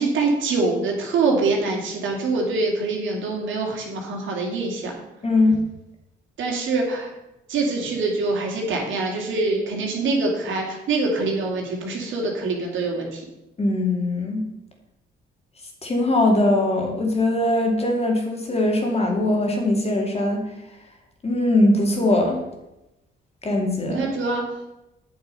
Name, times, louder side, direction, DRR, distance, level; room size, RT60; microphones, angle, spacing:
voice 1, 0.0-4.9 6.4-7.1 7.5-13.2 23.9-24.4, right 3 dB, 75° right, 0 dB, 2.7 m, -24 dB
voice 2, 5.2-5.6 13.6-14.4 15.8-20.4 21.2-22.4 23.4-24.0, left 2 dB, 30° left, 2 dB, 2.4 m, -21 dB
8.8 x 6.7 x 5.5 m, 0.94 s
cardioid pair, 90°, 20 cm